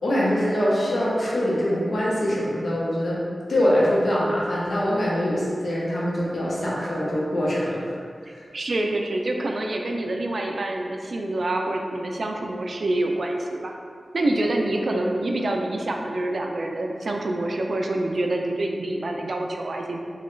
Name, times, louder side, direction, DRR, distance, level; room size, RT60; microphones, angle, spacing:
voice 1, 0.0-3.2 3.5-8.0 8.3-8.4 14.9-15.0, equal, 70° left, -6 dB, 0.8 m, -23 dB
voice 2, 8.5-13.7 14.1-20.0, right 1 dB, 65° right, 2 dB, 0.3 m, -26 dB
3.0 x 2.3 x 3.1 m, 2.2 s
cardioid pair, 55°, 0 cm